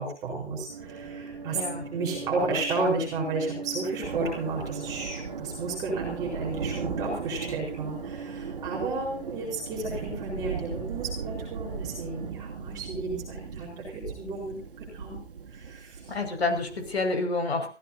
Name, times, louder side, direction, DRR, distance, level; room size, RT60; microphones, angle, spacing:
voice 1, 0.0-1.6 1.9-15.2 15.5-16.1, right 3 dB, 10° right, -3 dB, 4.4 m, -32 dB
sound 1, 0.7-12.3, right 5 dB, 30° right, 4.2 m, -41 dB
voice 2, 1.5-1.9 16.1-17.7, left 3 dB, 65° left, 6 dB, 5.8 m, -28 dB
Thunder, 4.0-17.1, right 6 dB, 50° right, 2.8 m, -38 dB
24.0 x 16.0 x 2.7 m, 0.36 s
hypercardioid pair, 165°, 34 cm